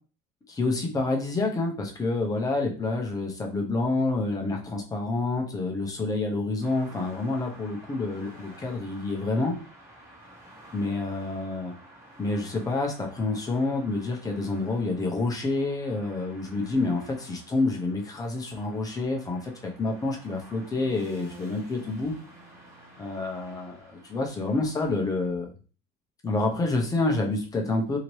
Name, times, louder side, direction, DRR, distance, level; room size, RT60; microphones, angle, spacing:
voice 1, 0.5-9.5 10.7-11.7 12.2-22.1 23.0-25.5 26.2-28.0, left 2 dB, 15° left, 1 dB, 0.6 m, -28 dB
sound 1, 6.6-25.3, equal, 15° right, 1.1 m, -51 dB
2.8 x 2.7 x 3.0 m, 0.37 s
cardioid pair, 140°, 21 cm